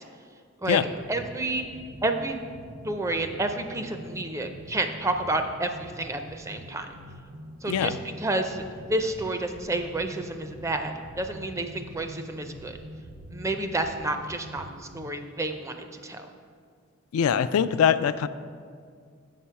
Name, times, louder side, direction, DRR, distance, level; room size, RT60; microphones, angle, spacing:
sound 1, 0.6-15.1, equal, 75° right, 0.7 m, -44 dB
voice 1, 1.1-1.6 2.0-2.4 2.8-6.9 7.6-12.8 13.3-16.3, right 2 dB, 15° right, 6 dB, 0.4 m, -30 dB
voice 2, 17.1-18.3, left 8 dB, 85° left, 12 dB, 0.3 m, -22 dB
7.5 x 6.2 x 5.7 m, 2.1 s
head